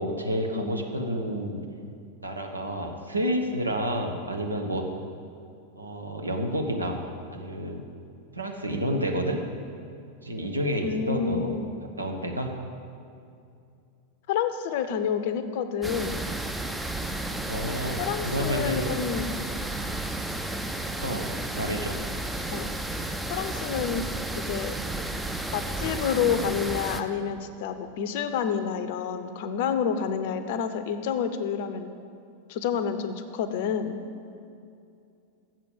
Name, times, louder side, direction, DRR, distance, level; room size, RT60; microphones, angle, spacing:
voice 1, 0.0-1.6 2.2-4.9 5.8-7.0 7.3-7.8 8.3-9.4 10.2-11.5 12.0-12.5 17.5-18.9 21.0-21.3 21.5-22.0, equal, 80° right, 3 dB, 1.0 m, -29 dB
voice 2, 10.8-11.7 14.3-16.3 18.0-19.3 22.5-22.7 23.3-24.1 24.3-24.7 25.5-31.9 32.5-34.0, left 7 dB, 50° left, 10 dB, 0.6 m, -29 dB
sound 1, 15.8-27.0, right 2 dB, 5° right, 0.5 m, -32 dB
7.5 x 6.8 x 8.0 m, 2.5 s
figure-of-eight pair, 90°, 0 cm